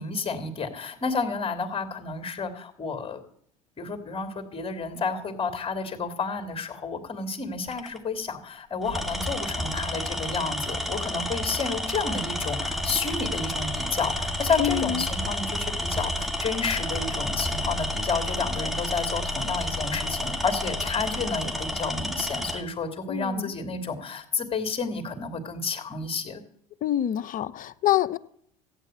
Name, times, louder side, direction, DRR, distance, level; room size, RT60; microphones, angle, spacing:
voice 1, 0.0-3.2 3.8-26.4, left 4 dB, 30° left, 2.9 m, -30 dB
Tools, 7.7-8.0 8.8-22.6, left 1 dB, ahead, 1.7 m, -30 dB
voice 2, 14.6-15.0 23.1-23.5 26.8-28.2, left 12 dB, 45° left, 0.8 m, -26 dB
15.0 x 8.9 x 8.0 m
hypercardioid pair, 65°, 19 cm